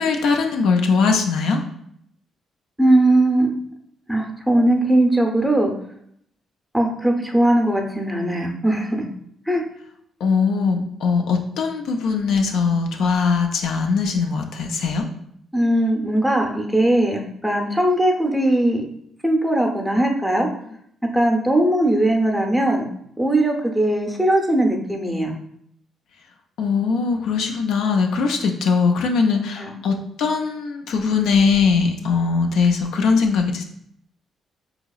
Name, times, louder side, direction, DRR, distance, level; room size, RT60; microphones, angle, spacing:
voice 1, 0.0-1.6 10.2-15.1 26.6-33.6, left 5 dB, 80° left, 3 dB, 0.4 m, -20 dB
voice 2, 2.8-3.5 4.1-5.7 6.7-9.0 9.5-9.6 15.5-18.8 19.2-20.5 21.1-22.9 23.2-25.3 29.6-29.7, right 1 dB, ahead, 2 dB, 0.6 m, -19 dB
3.9 x 2.8 x 2.3 m, 0.70 s
cardioid pair, 90°, 0 cm